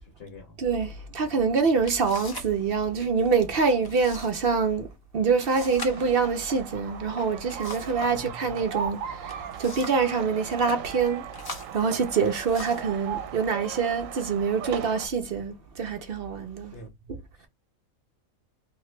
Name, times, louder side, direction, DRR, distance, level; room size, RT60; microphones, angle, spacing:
voice 1, 0.0-0.6 8.0-8.4 16.7-16.9 17.4-17.5, equal, 55° left, 0.9 m, -46 dB
voice 2, 0.6-11.3 11.7-16.8 17.1-17.2, right 5 dB, 60° right, 0.6 m, -25 dB
sound 1, 1.3-1.4 1.8-2.6 2.8-3.3 3.8-4.4 4.7-4.8 5.4-8.1 9.0-10.1 10.5-10.8 11.3-13.0 13.7-13.9 14.5-15.0, left 2 dB, 25° left, 0.6 m, -42 dB
sound 2, 5.5-15.1, right 8 dB, 75° right, 1.0 m, -37 dB
2.9 x 2.5 x 3.1 m
omnidirectional pair, 1.4 m